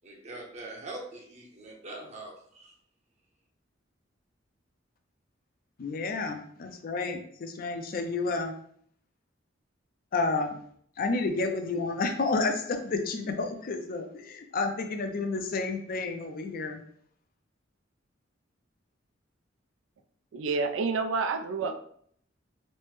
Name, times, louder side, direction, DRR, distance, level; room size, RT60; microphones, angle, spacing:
voice 1, 0.0-2.7, right 2 dB, 35° right, -1 dB, 0.7 m, -43 dB
voice 2, 5.8-8.5 10.1-10.6 11.0-16.8, left 3 dB, 50° left, 6 dB, 0.4 m, -30 dB
voice 3, 20.3-21.8, right 4 dB, 85° right, 7 dB, 0.3 m, -29 dB
3.2 x 2.0 x 3.1 m, 0.62 s
head